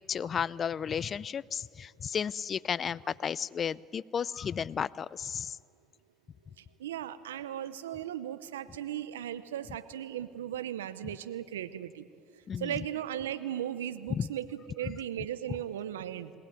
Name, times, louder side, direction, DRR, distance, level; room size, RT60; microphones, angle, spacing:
voice 1, 0.1-5.6 12.5-12.7 14.1-14.3, left 7 dB, 40° left, 20 dB, 0.5 m, -33 dB
voice 2, 6.8-12.1 12.6-16.3, right 11 dB, 90° right, 13 dB, 0.8 m, -37 dB
20.0 x 18.0 x 9.3 m, 2.2 s
hypercardioid pair, 65°, 0 cm